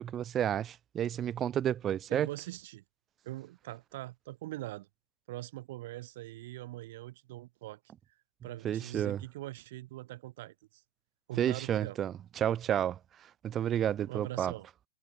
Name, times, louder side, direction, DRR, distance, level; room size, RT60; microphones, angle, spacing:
voice 1, 0.0-2.3 8.6-9.2 11.4-13.0 13.4-14.5, right 10 dB, 20° right, 1.1 m, -31 dB
voice 2, 2.1-2.8 3.2-4.9 5.3-7.8 8.4-10.8 11.3-12.0 14.0-14.7, right 17 dB, 45° right, 3.3 m, -42 dB
figure-of-eight pair, 110°, 0 cm